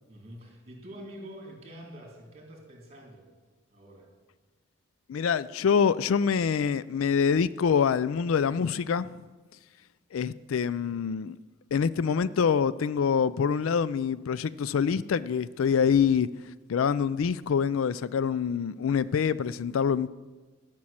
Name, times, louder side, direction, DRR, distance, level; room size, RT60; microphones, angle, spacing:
voice 1, 0.1-3.3 3.7-4.1, equal, 30° right, 3.1 m, -46 dB
voice 2, 5.1-9.2 10.1-11.4 11.7-16.3 16.7-20.1, left 6 dB, 80° left, 0.4 m, -25 dB
13.0 x 6.2 x 8.6 m
head